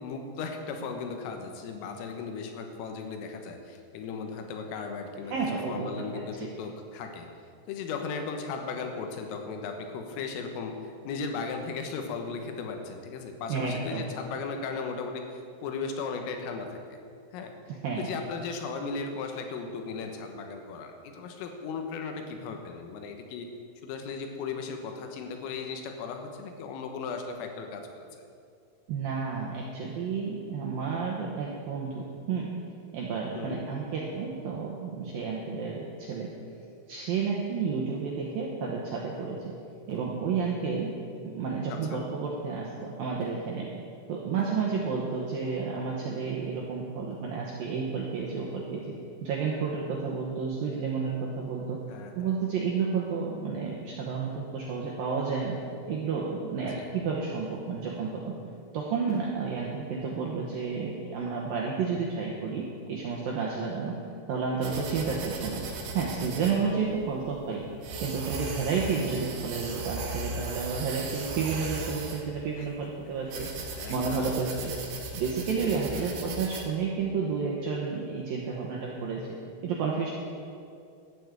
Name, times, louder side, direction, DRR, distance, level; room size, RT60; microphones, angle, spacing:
voice 1, 0.0-5.3 5.7-7.3 7.7-17.0 17.3-17.5 18.0-23.5 23.8-28.1 33.4-33.6 41.7-42.0 51.9-52.4 56.7-56.9 72.6-72.7 73.4-74.7 75.8-76.3, left 5 dB, 85° left, 4 dB, 3.8 m, -37 dB
voice 2, 5.3-6.2 13.5-14.0 17.8-18.1 28.9-32.5 32.9-36.3 36.9-39.4 39.9-40.9 41.2-43.7 44.1-48.8 49.2-51.8 52.2-55.6 55.9-58.3 58.7-63.9 64.3-65.6 65.9-67.6 68.0-73.5 73.9-74.7 75.1-79.3 79.6-80.1, right 5 dB, 80° right, -2 dB, 2.1 m, -31 dB
sound 1, 64.6-76.6, right 3 dB, 60° right, 2.9 m, -37 dB
12.0 x 8.6 x 8.2 m, 2.4 s
omnidirectional pair, 5.8 m